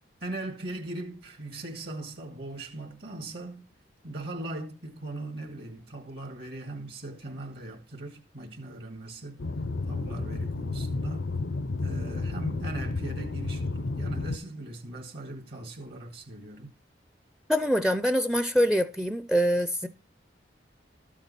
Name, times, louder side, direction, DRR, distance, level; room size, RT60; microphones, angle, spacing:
voice 1, 0.2-3.7 4.0-9.4 9.9-11.3 11.8-16.7, right 1 dB, 60° right, 2.0 m, -39 dB
sound 1, 9.4-14.4, left 3 dB, 80° left, 0.7 m, -32 dB
voice 2, 17.5-19.9, equal, 5° right, 0.5 m, -24 dB
13.0 x 7.4 x 4.2 m
head